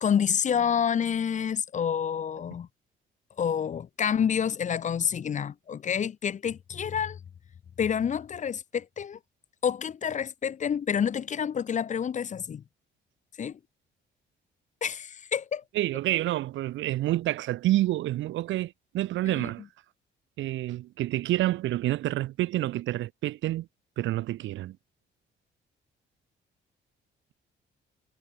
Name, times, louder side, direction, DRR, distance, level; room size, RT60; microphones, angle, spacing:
voice 1, 0.0-2.7 3.4-7.2 7.8-9.2 9.6-12.6 13.4-13.6 14.8-15.6 19.3-19.5, left 8 dB, 40° left, 0.5 m, -28 dB
voice 2, 15.7-19.6 20.4-23.7 24.0-24.8, right 15 dB, 75° right, 0.6 m, -28 dB
cardioid pair, 90°, 20 cm